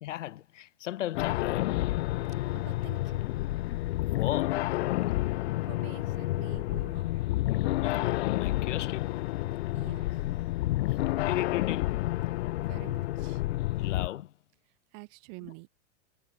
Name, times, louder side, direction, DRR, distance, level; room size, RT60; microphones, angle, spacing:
voice 1, 0.0-1.7 4.1-4.7 7.8-9.1 11.2-12.0 13.7-14.3, left 13 dB, 80° left, 1.2 m, -36 dB
sound 1, 1.1-14.1, left 17 dB, 60° left, 0.6 m, -30 dB
voice 2, 2.5-3.3 5.4-7.3 9.7-10.4 12.7-13.4 14.7-15.7, right 40 dB or more, 40° right, 3.2 m, -48 dB
supercardioid pair, 160°, 36 cm